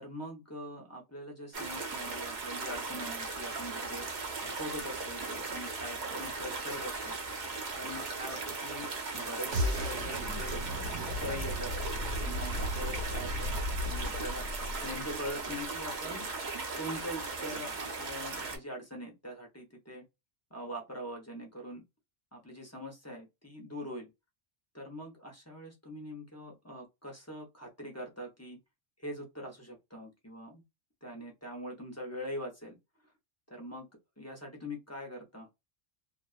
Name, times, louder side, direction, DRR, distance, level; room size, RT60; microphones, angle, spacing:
voice 1, 0.0-4.1 4.4-7.1 7.8-10.6 10.9-11.7 12.2-13.6 13.8-14.5 14.8-16.3 16.7-20.0 20.5-21.8 22.3-24.1 24.7-28.6 29.0-30.6 31.0-32.8 33.5-33.9 34.2-35.5, equal, 20° left, 0.6 m, -42 dB
sound 1, 1.5-18.6, right 3 dB, 50° right, 0.7 m, -38 dB
sound 2, 9.5-15.5, left 1 dB, 70° right, 1.1 m, -35 dB
2.4 x 2.4 x 2.3 m
omnidirectional pair, 1.2 m